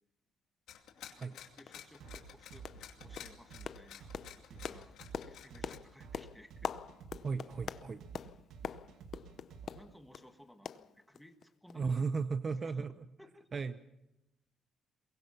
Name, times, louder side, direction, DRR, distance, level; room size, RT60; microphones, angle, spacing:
sound 1, 0.7-5.8, left 10 dB, 80° left, 2.5 m, -52 dB
sound 2, 1.1-1.2 1.7-1.8 2.1-2.3 2.6-2.9 3.2-10.3 10.7-11.4 11.7-11.8 12.2-12.3, left 8 dB, 50° left, 0.7 m, -44 dB
voice 1, 1.1-4.9 5.3-6.7 7.9-8.1 9.7-12.9 13.2-13.6, equal, ahead, 6 dB, 1.6 m, -59 dB
sound 3, 2.0-9.9, right 6 dB, 80° right, 2.3 m, -51 dB
voice 2, 7.2-8.0 11.7-12.9 13.5-13.7, right 5 dB, 30° right, 11 dB, 0.7 m, -35 dB
22.5 x 22.0 x 5.8 m, 0.92 s
cardioid pair, 145°, 0 cm